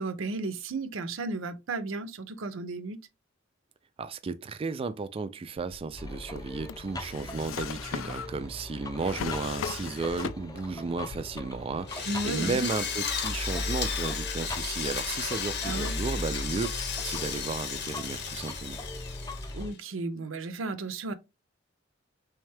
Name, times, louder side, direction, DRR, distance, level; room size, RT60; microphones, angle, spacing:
voice 1, 0.0-3.0 12.1-12.7 15.6-16.0 19.5-21.1, right 2 dB, 75° right, 0.6 m, -34 dB
voice 2, 4.0-18.8, right 4 dB, 30° right, 0.3 m, -34 dB
Drawer open or close, 5.6-10.8 11.1-11.9, left 7 dB, 75° left, 0.4 m, -39 dB
sound 1, 6.0-19.7, left 1 dB, 20° left, 0.6 m, -39 dB
Drill, 11.9-19.7, left 7 dB, 60° left, 0.7 m, -34 dB
3.5 x 3.2 x 3.3 m
head